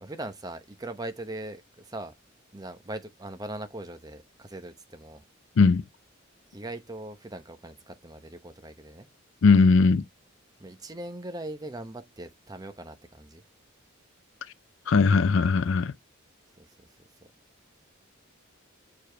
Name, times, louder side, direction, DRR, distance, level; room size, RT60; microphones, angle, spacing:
voice 1, 0.0-2.1 2.5-5.2 6.5-9.1 10.6-13.4 16.6-16.9, right 1 dB, 20° right, 0.8 m, -40 dB
voice 2, 9.4-10.0 14.9-15.9, left 4 dB, 65° left, 0.4 m, -19 dB
6.8 x 4.8 x 3.3 m
head